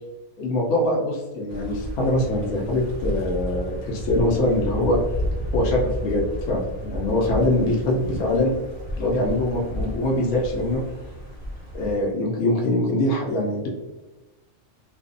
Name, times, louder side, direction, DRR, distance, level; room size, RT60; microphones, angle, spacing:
voice 1, 0.4-5.0 5.5-8.5 9.0-10.8 11.7-13.7, left 1 dB, 75° left, -2 dB, 0.9 m, -23 dB
sound 1, 1.5-12.0, equal, 45° right, 0.8 m, -32 dB
2.5 x 2.3 x 2.4 m, 1.1 s
omnidirectional pair, 1.4 m